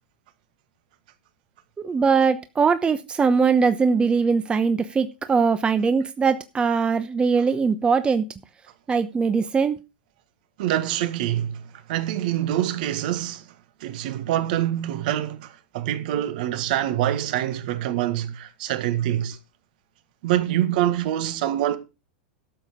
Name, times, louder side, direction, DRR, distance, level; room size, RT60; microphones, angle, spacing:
voice 1, 1.8-8.3 8.9-9.8, right 5 dB, 20° right, 0.9 m, -21 dB
voice 2, 10.6-11.6 11.9-13.5 13.8-19.4 20.2-21.8, right 12 dB, 60° right, 1.6 m, -25 dB
13.0 x 7.4 x 5.1 m
hypercardioid pair, 95°, 5 cm